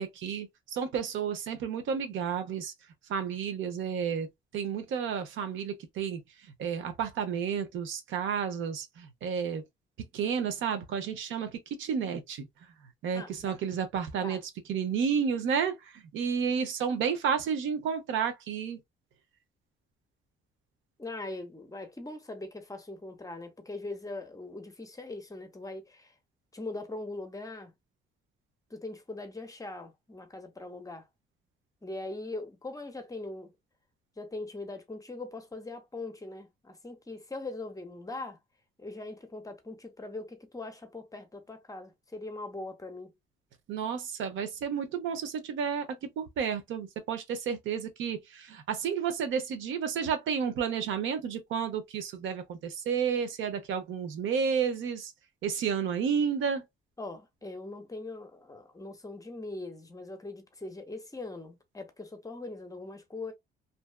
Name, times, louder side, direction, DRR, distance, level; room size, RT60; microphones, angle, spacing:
voice 1, 0.0-2.7 3.1-4.3 4.5-6.2 6.6-9.6 10.1-11.5 11.8-12.5 13.0-14.4 14.7-15.7 16.1-18.8 43.7-45.9 46.2-55.1 55.4-56.6, right 7 dB, 80° right, 0.7 m, -31 dB
voice 2, 13.1-13.6 14.2-14.4 21.0-26.1 26.5-27.7 28.7-31.1 31.8-33.5 34.2-38.4 38.8-43.1 57.0-63.3, left 2 dB, 15° left, 0.7 m, -41 dB
2.7 x 2.3 x 2.2 m
cardioid pair, 90°, 20 cm